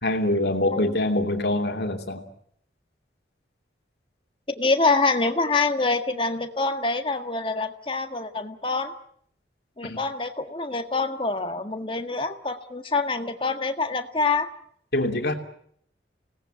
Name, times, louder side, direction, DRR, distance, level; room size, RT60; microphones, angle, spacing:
voice 1, 0.0-2.2 9.8-10.0 14.9-15.3, left 1 dB, 60° left, 5 dB, 2.9 m, -24 dB
voice 2, 4.6-8.9 9.8-14.5, left 3 dB, 30° left, 6 dB, 1.7 m, -25 dB
27.5 x 18.5 x 9.0 m, 0.69 s
head